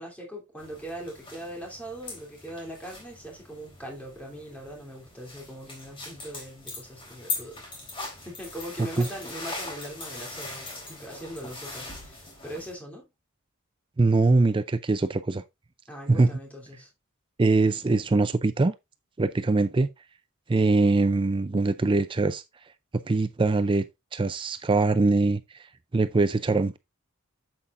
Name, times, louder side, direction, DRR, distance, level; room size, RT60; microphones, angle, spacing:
voice 1, 0.0-7.6 8.2-13.1 15.9-16.9, equal, 5° left, 2.9 m, -41 dB
sound 1, 0.6-12.7, left 3 dB, 25° left, 3.6 m, -40 dB
voice 2, 14.0-15.4 16.1-16.3 17.4-18.7 19.2-19.9 20.5-22.4 23.1-23.8 24.1-25.7 25.9-26.8, right 3 dB, 25° right, 0.4 m, -22 dB
8.1 x 7.8 x 2.5 m
head